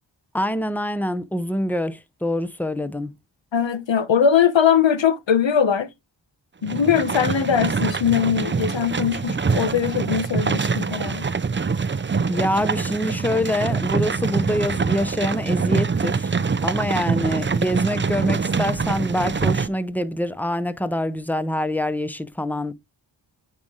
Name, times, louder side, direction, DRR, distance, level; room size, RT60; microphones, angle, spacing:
voice 1, 0.3-3.1 12.3-16.3 16.6-22.7, left 1 dB, 5° left, 0.8 m, -25 dB
voice 2, 3.5-5.9 6.6-11.3, left 8 dB, 80° left, 1.0 m, -20 dB
sound 1, 6.6-19.7, right 5 dB, 25° right, 0.4 m, -24 dB
9.4 x 3.2 x 3.7 m
wide cardioid pair, 75°, 45 cm